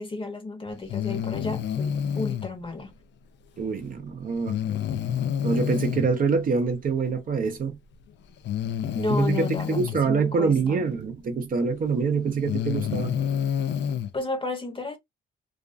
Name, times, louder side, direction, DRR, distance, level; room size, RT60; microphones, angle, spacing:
voice 1, 0.0-2.9 8.9-10.8 14.1-15.0, left 2 dB, 25° left, 0.8 m, -32 dB
Breathing, 0.9-2.5 4.5-6.1 7.4-7.5 8.4-10.0 11.5-11.6 12.3-14.1, left 8 dB, 65° left, 0.4 m, -28 dB
voice 2, 3.6-4.6 5.4-7.8 9.2-13.1, right 5 dB, 45° right, 0.6 m, -25 dB
2.4 x 2.2 x 2.4 m
cardioid pair, 90°, 20 cm